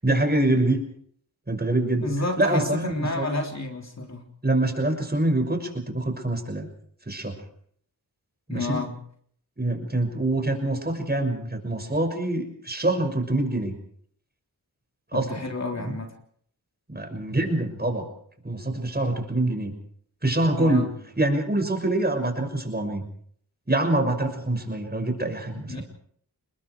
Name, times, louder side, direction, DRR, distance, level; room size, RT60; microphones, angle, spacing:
voice 1, 0.0-0.8 1.5-2.1 2.4-3.3 4.4-6.7 7.1-7.4 8.5-8.8 9.6-13.7 15.1-15.3 15.7-16.0 16.9-18.1 18.4-19.7 20.2-20.9 21.2-23.0 23.7-25.8, right 2 dB, 25° right, 5 dB, 6.2 m, -25 dB
voice 2, 2.0-4.2 8.5-9.0 15.1-16.1 20.5-20.9 25.7-25.8, left 2 dB, 45° left, 2 dB, 3.6 m, -30 dB
29.0 x 21.0 x 4.7 m, 0.62 s
cardioid pair, 60°, 39 cm